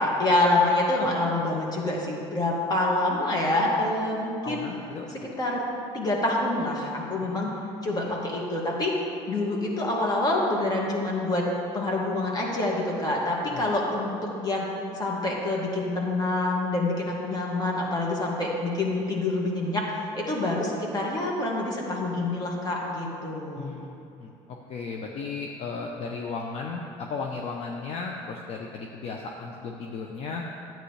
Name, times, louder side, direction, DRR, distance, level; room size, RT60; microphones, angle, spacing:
voice 1, 0.0-4.6 5.4-5.6 5.9-7.5 7.8-9.0 9.3-11.5 11.7-14.1 14.4-14.7 14.9-23.8, left 2 dB, 35° left, -2 dB, 2.2 m, -26 dB
voice 2, 4.4-5.3 7.2-7.5 8.0-8.1 13.5-13.7 23.6-23.9 24.2-24.3 24.7-30.5, left 4 dB, 60° left, 1 dB, 0.8 m, -35 dB
12.0 x 9.1 x 3.3 m, 2.6 s
supercardioid pair, 90°, 12 cm